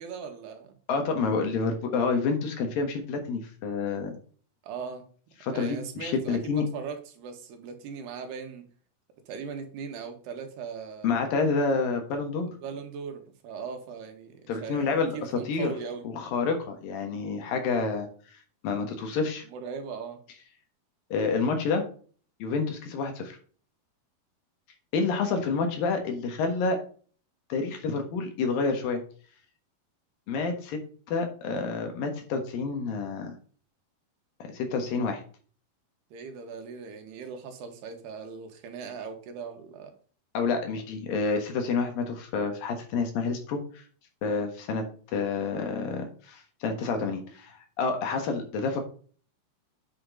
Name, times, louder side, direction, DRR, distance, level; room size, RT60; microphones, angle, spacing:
voice 1, 0.0-0.8 4.6-5.1 5.5-8.7 9.3-11.1 12.4-16.1 19.4-20.2 36.1-39.9, right 6 dB, 85° right, 5 dB, 3.5 m, -39 dB
voice 2, 0.9-4.2 5.4-6.7 11.0-12.5 14.5-15.7 16.0-18.1 18.6-19.5 21.1-21.9 22.4-23.4 24.9-26.8 27.5-29.0 30.3-30.8 31.1-33.3 34.5-35.2 40.3-43.8 44.2-44.8 45.1-48.8, left 4 dB, 65° left, 5 dB, 3.0 m, -28 dB
8.7 x 6.1 x 3.8 m, 0.42 s
omnidirectional pair, 4.6 m